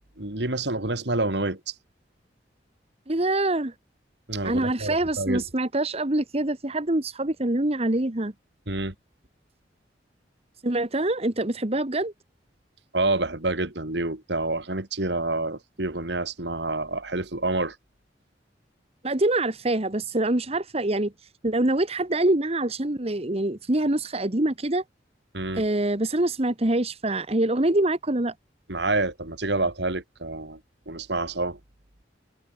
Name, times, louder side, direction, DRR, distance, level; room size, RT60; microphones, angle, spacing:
voice 1, 0.2-1.7 4.3-5.4 8.7-8.9 12.9-17.8 25.3-25.6 28.7-30.6 30.9-31.6, right 2 dB, 70° right, 3.1 m, -28 dB
voice 2, 3.1-3.7 4.4-8.3 10.6-12.1 19.0-21.1 21.4-24.8 25.6-28.3, right 1 dB, 35° right, 1.5 m, -25 dB
head